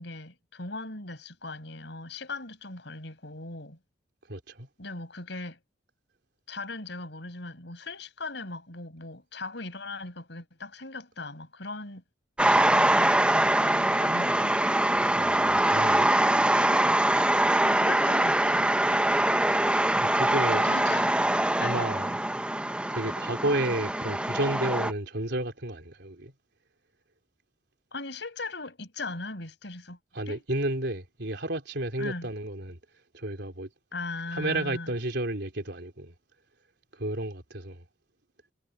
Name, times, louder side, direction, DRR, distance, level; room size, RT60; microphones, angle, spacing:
voice 1, 0.0-3.8 4.8-5.6 6.5-12.0 12.5-14.6 17.6-18.8 20.6-21.9 27.9-30.0 30.3-30.4 32.0-32.3 33.9-34.9, left 3 dB, 70° left, 6.2 m, -39 dB
voice 2, 4.3-4.7 15.1-16.1 19.8-20.7 21.6-22.1 22.9-26.3 30.1-32.8 33.1-33.7 34.3-36.1 36.9-37.9, right 1 dB, 70° right, 3.9 m, -32 dB
sound 1, 12.4-24.9, right 1 dB, 5° right, 0.8 m, -23 dB
head